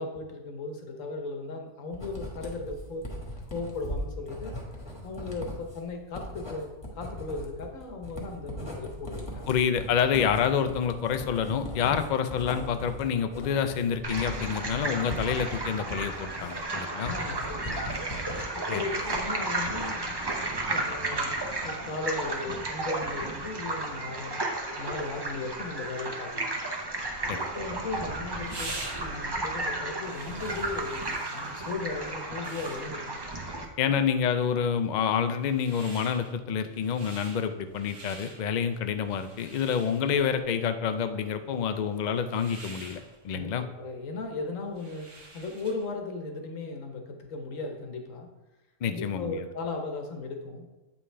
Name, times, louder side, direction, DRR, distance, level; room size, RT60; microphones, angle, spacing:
voice 1, 0.0-3.1 3.5-4.5 5.0-9.6 17.0-17.9 18.5-24.4 24.8-26.5 27.3-33.2 33.9-34.0 43.3-48.3 48.9-50.6, left 3 dB, 85° left, 3 dB, 1.4 m, -37 dB
Writing, 1.9-18.5 18.8-19.5, left 1 dB, 20° left, 1.3 m, -39 dB
voice 2, 9.5-17.1 18.7-18.8 27.3-27.5 33.8-43.6 48.8-49.4, left 7 dB, 70° left, 9 dB, 0.4 m, -28 dB
sound 1, 14.0-33.6, right 2 dB, 25° right, 0.6 m, -33 dB
sound 2, 27.4-46.0, right 2 dB, 70° right, 1.5 m, -47 dB
8.2 x 5.5 x 3.3 m, 1.1 s
omnidirectional pair, 1.3 m